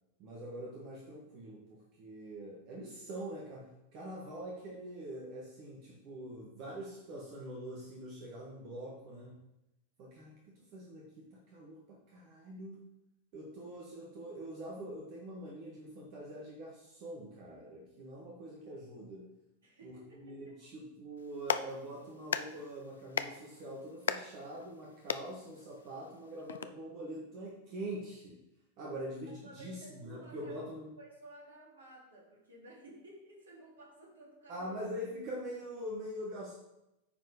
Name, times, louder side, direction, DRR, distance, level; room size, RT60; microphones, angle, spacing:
voice 1, 0.2-9.4 10.0-12.8 13.3-19.3 19.8-28.4 28.8-30.9 34.5-36.5, right 1 dB, 45° right, -3 dB, 1.7 m, -44 dB
voice 2, 19.6-20.5 29.4-30.6 31.0-34.7, right 1 dB, 70° right, -3 dB, 2.9 m, -54 dB
Clapping, 21.2-26.7, left 7 dB, 65° left, 0.4 m, -39 dB
9.1 x 4.6 x 5.0 m, 0.90 s
figure-of-eight pair, 90°, 0 cm